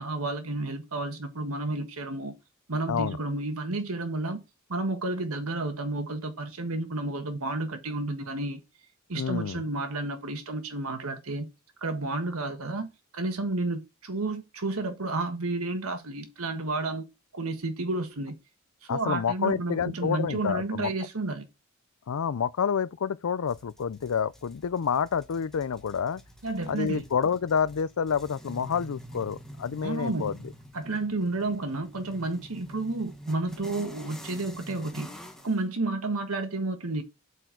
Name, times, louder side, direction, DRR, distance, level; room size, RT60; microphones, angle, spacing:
voice 1, 0.0-2.4 2.7-4.4 4.7-8.6 9.1-11.5 11.8-12.9 13.1-17.0 17.3-18.4 18.9-21.5 26.4-27.0 29.8-30.3 30.7-35.2 35.4-37.0, right 2 dB, 85° right, 1.5 m, -31 dB
voice 2, 9.2-9.6 18.9-20.9 22.1-26.2 26.7-30.3, left 7 dB, 75° left, 0.4 m, -28 dB
sound 1, 23.5-35.6, equal, ahead, 1.1 m, -47 dB
7.9 x 4.5 x 4.6 m
head